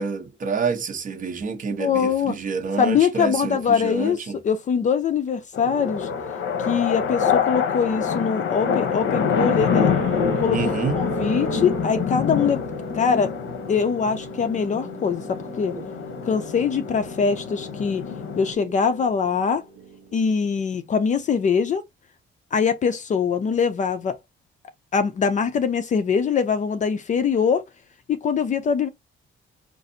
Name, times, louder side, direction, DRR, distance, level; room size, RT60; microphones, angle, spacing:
voice 1, 0.0-4.4 10.5-11.0 15.7-15.8, right 5 dB, 40° right, 0.9 m, -28 dB
voice 2, 1.8-2.4 2.8-4.2 4.4-6.1 6.7-9.9 10.4-12.6 12.9-13.3 13.7-15.8 16.2-18.1 18.4-19.6 20.1-21.8 22.5-24.2 24.9-27.6 28.1-28.9, left 6 dB, 35° left, 0.4 m, -23 dB
sound 1, 5.5-18.5, left 7 dB, 75° left, 0.8 m, -26 dB
sound 2, 9.6-20.5, right 5 dB, 90° right, 0.9 m, -37 dB
5.2 x 2.5 x 2.6 m
cardioid pair, 175°, 21 cm